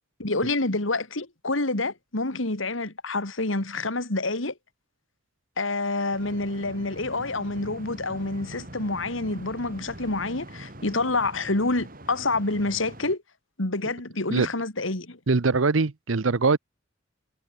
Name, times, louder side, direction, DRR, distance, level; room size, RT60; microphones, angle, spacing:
voice 1, 0.2-4.5 5.6-13.2 13.6-15.2, left 2 dB, 85° left, 2.8 m, -28 dB
sound 1, 6.1-13.1, right 1 dB, 45° right, 7.4 m, -43 dB
voice 2, 15.3-16.6, right 4 dB, 90° right, 0.8 m, -22 dB
head